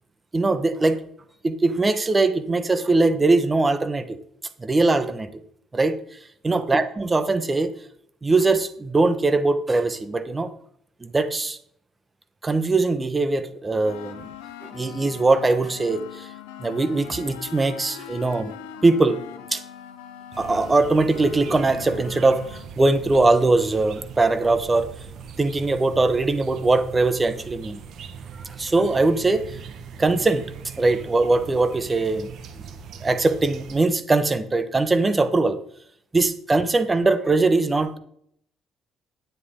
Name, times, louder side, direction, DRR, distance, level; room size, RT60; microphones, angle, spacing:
voice 1, 0.3-1.0 1.4-4.2 4.6-5.4 5.7-5.9 6.4-7.7 8.2-10.5 11.0-11.6 12.4-14.3 14.6-16.3 16.6-18.5 18.8-19.2 19.5-19.6 20.4-24.9 25.4-27.8 28.4-29.6 30.0-30.4 30.8-32.3 33.0-35.6 36.1-38.0, right 3 dB, 25° right, 11 dB, 1.3 m, -21 dB
sound 1, 13.8-22.7, left 10 dB, 80° left, 1.0 m, -41 dB
sound 2, 20.3-33.8, right 6 dB, 65° right, 1.4 m, -40 dB
10.5 x 9.6 x 3.8 m, 0.66 s
hypercardioid pair, 55°, 0 cm